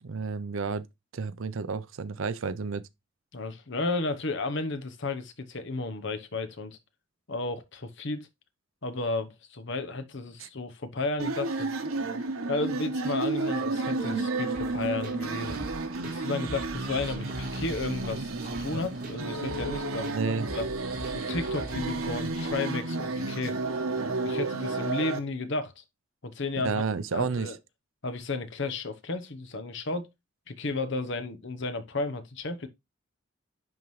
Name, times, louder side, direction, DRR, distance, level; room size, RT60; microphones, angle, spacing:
voice 1, 0.0-0.9 1.1-2.8 10.4-10.5 20.1-20.5 26.6-27.5, right 5 dB, 70° right, 0.6 m, -31 dB
voice 2, 3.3-6.8 7.3-8.3 8.8-11.8 12.5-15.6 16.1-20.7 21.1-23.6 24.2-25.8 26.2-26.8 27.1-27.6 28.0-30.1 30.5-32.7, left 3 dB, 60° left, 1.0 m, -33 dB
sound 1, 11.2-25.2, right 3 dB, 90° right, 1.1 m, -32 dB
sound 2, 14.5-22.5, right 1 dB, 45° right, 2.3 m, -42 dB
10.5 x 3.7 x 3.1 m
head